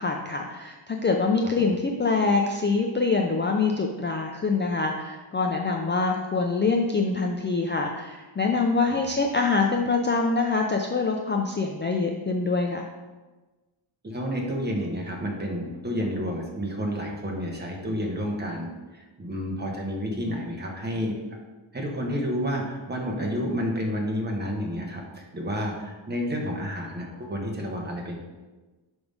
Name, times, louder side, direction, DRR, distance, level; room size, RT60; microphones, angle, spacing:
voice 1, 0.0-12.9, left 4 dB, 25° left, 2 dB, 0.4 m, -25 dB
voice 2, 14.0-21.2 21.7-28.1, equal, 20° right, -1 dB, 1.2 m, -30 dB
5.9 x 3.6 x 5.3 m, 1.2 s
wide cardioid pair, 115°, 49 cm